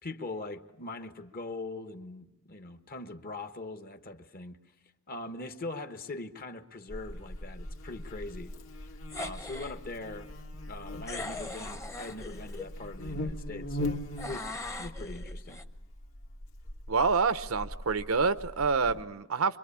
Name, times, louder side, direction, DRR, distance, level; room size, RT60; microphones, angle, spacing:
voice 1, 0.0-4.6 5.1-8.5 8.8-8.9 9.1-10.3 10.7-14.5 14.8-15.6 18.8-19.0, left 2 dB, 45° left, 1.2 m, -41 dB
Buzz, 6.9-19.0, left 1 dB, 70° left, 2.3 m, -40 dB
sound 1, 9.1-9.8 11.1-12.7 14.2-15.6, left 2 dB, 15° left, 0.9 m, -40 dB
voice 2, 16.9-19.6, right 4 dB, 80° right, 0.9 m, -27 dB
25.5 x 23.5 x 8.6 m
head